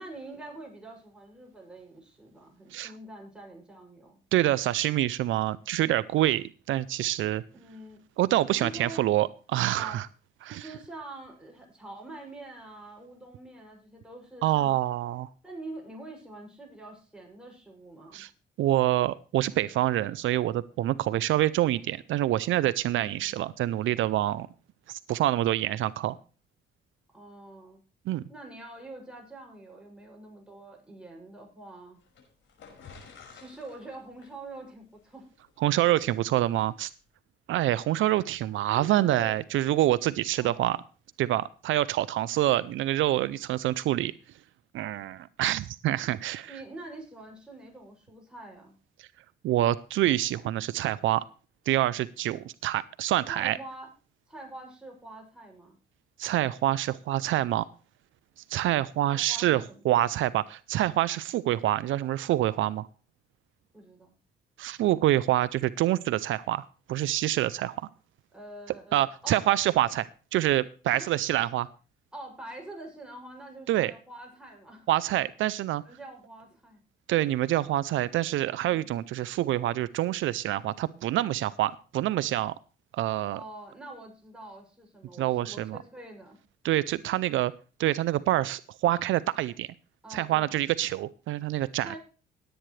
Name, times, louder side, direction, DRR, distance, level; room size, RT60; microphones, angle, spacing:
voice 1, 0.0-4.2 7.5-8.0 8.5-9.0 9.7-10.0 10.4-14.8 15.4-18.2 22.9-23.5 27.1-27.8 28.3-32.0 33.3-35.3 38.7-39.4 40.4-40.7 46.5-48.7 53.3-53.9 54.3-55.8 59.1-59.8 63.7-64.1 68.3-69.4 70.9-71.2 72.1-74.9 75.8-76.8 83.3-86.4 90.0-90.6 91.8-92.0, right 2 dB, 5° right, -1 dB, 6.8 m, -45 dB
voice 2, 4.3-7.4 8.2-10.1 10.4-10.7 14.4-15.3 18.1-18.3 18.6-24.5 24.9-26.2 28.1-28.2 35.6-36.9 37.5-40.8 41.2-44.1 44.7-46.5 49.0-49.1 49.4-51.2 51.7-53.6 56.2-57.7 58.4-62.9 64.6-67.9 68.9-71.7 73.7-73.9 74.9-75.8 77.1-82.5 82.9-83.4 85.2-85.8 86.6-87.5 87.8-89.7 90.1-92.0, right 14 dB, 75° right, 17 dB, 0.5 m, -26 dB
sound 1, 32.0-36.7, left 5 dB, 75° left, 5.5 m, -52 dB
18.0 x 9.0 x 3.2 m, 0.36 s
cardioid pair, 90°, 20 cm